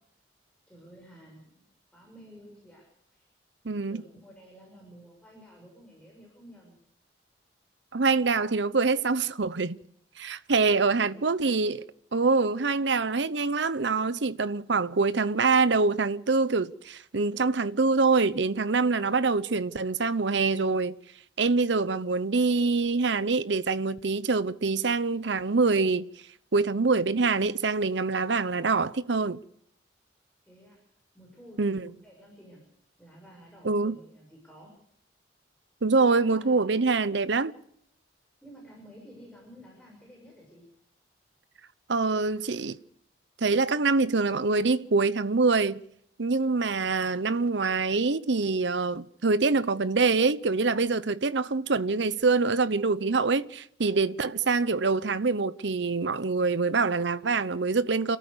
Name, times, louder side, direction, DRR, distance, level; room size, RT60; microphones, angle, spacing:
voice 1, 0.7-1.5 1.9-3.3 3.9-6.8 10.7-11.3 30.4-30.8 31.1-31.6 32.0-32.6 33.0-34.8 36.1-36.7 38.4-40.7, equal, 5° left, 6.0 m, -51 dB
voice 2, 3.6-4.0 7.9-9.8 10.2-11.8 12.1-20.9 21.4-26.1 26.5-29.4 31.6-31.9 33.6-33.9 35.8-37.5 41.9-42.8 43.4-45.8 46.2-58.2, right 4 dB, 70° right, 0.8 m, -25 dB
29.0 x 13.5 x 6.7 m
head